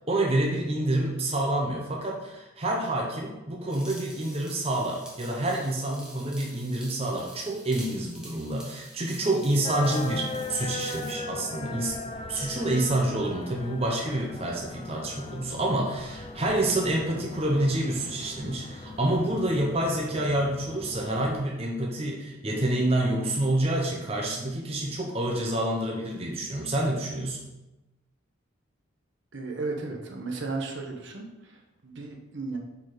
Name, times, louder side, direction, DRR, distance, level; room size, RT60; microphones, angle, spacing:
voice 1, 0.1-12.0 12.3-27.5, right 1 dB, 30° right, -1 dB, 0.8 m, -28 dB
sound 1, 3.7-11.2, right 1 dB, 5° right, 1.1 m, -47 dB
sound 2, 9.6-21.5, left 3 dB, 25° left, 0.3 m, -39 dB
voice 2, 29.3-32.6, right 3 dB, 55° right, 1 dB, 0.9 m, -35 dB
5.7 x 4.6 x 4.8 m, 1.0 s
head